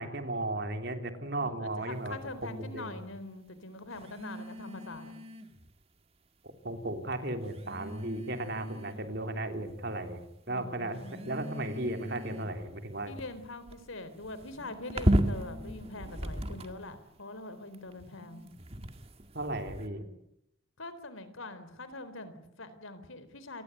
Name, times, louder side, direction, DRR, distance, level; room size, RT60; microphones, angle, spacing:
voice 1, 0.0-2.2 2.4-3.0 6.6-10.2 10.5-13.1 19.3-20.0, right 1 dB, 55° right, 7 dB, 3.5 m, -35 dB
voice 2, 1.4-5.2 10.5-11.3 13.0-18.4 20.8-23.6, left 2 dB, 85° left, 13 dB, 3.9 m, -43 dB
sound 1, 1.9-2.2 3.9-5.7 6.7-6.8 7.4-9.2 9.7-10.2 10.9-17.0 17.7-19.9, equal, 30° right, 2.0 m, -36 dB
29.0 x 20.0 x 9.4 m, 0.81 s
head